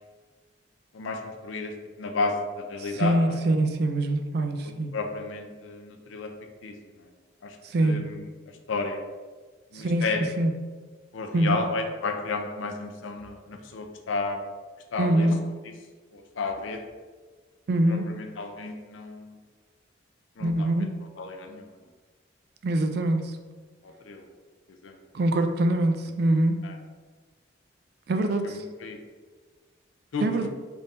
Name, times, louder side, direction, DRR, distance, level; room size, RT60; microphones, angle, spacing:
voice 1, 0.9-3.4 4.6-6.3 6.6-7.1 7.4-7.6 7.8-8.3 8.7-9.0 9.7-10.3 11.1-14.4 14.9-15.3 16.1-16.8 17.9-19.4 20.4-20.7 21.2-21.7 23.8-24.3 24.8-25.0 26.6-26.7 28.4-29.0 30.1-30.5, left 3 dB, 80° left, 4 dB, 0.5 m, -32 dB
voice 2, 2.8-4.9 7.6-8.0 9.7-10.5 11.3-11.6 15.0-15.4 17.7-18.1 20.4-20.9 22.6-23.4 25.1-26.6 28.1-28.6 30.2-30.5, right 1 dB, 50° right, 7 dB, 0.3 m, -24 dB
3.6 x 2.6 x 4.0 m, 1.4 s
head